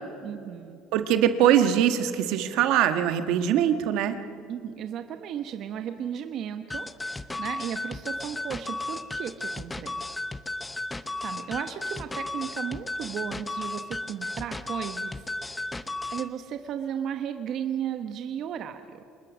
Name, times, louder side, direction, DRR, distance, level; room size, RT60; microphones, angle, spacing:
voice 1, 0.2-0.8 4.5-9.9 11.2-15.7 16.1-19.0, right 9 dB, 55° right, 8 dB, 1.1 m, -35 dB
voice 2, 0.9-4.2, right 10 dB, 75° right, 9 dB, 1.4 m, -22 dB
sound 1, 6.7-16.3, left 2 dB, 10° left, 0.9 m, -34 dB
26.5 x 20.5 x 6.3 m, 2.5 s
cardioid pair, 115°, 0 cm